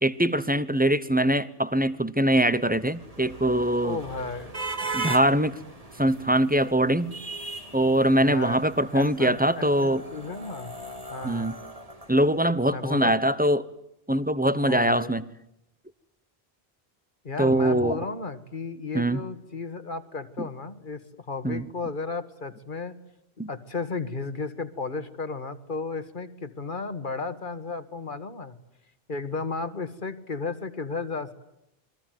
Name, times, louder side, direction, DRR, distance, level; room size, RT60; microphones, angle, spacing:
voice 1, 0.0-4.0 4.9-5.5 6.0-7.1 7.7-10.0 11.2-11.5 12.1-13.7 14.1-15.2 17.4-18.0 18.9-19.2 20.4-20.5 21.4-21.6 23.4-23.5, right 1 dB, 10° right, 15 dB, 0.9 m, -23 dB
sound 1, 2.4-12.8, right 3 dB, 35° right, 2.3 m, -39 dB
voice 2, 3.8-4.6 8.1-10.7 11.1-11.5 12.7-13.2 14.6-15.2 17.2-23.0 23.5-28.6 29.1-31.3, left 4 dB, 55° left, 11 dB, 1.9 m, -34 dB
28.0 x 23.0 x 9.3 m, 0.83 s
omnidirectional pair, 1.0 m